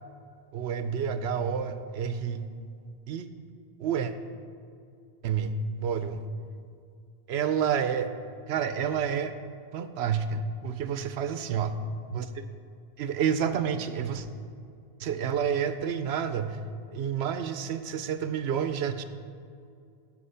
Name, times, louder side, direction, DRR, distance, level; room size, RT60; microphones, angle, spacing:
voice 1, 0.5-2.5 3.1-3.3 3.8-4.1 5.2-6.3 7.3-8.1 8.5-9.3 9.7-11.7 12.1-12.3 13.0-14.3 15.0-16.6 16.9-19.0, right 7 dB, 85° right, 10 dB, 0.9 m, -29 dB
12.0 x 5.4 x 5.6 m, 2.4 s
omnidirectional pair, 1.1 m